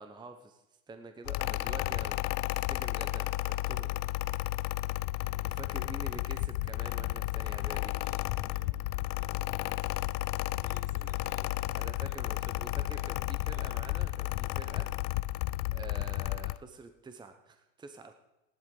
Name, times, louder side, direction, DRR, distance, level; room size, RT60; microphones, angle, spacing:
voice 1, 0.0-2.2 2.5-3.9 5.4-8.0 11.8-14.9 15.7-18.1, right 3 dB, 10° right, 7 dB, 0.9 m, -47 dB
Mechanical fan, 1.3-16.6, left 19 dB, 50° left, 0.4 m, -33 dB
voice 2, 7.8-10.1 10.6-12.7 12.9-13.2 13.4-13.8, right 5 dB, 65° right, -1 dB, 4.3 m, -58 dB
15.5 x 11.5 x 3.9 m, 0.94 s
hypercardioid pair, 100°, 38 cm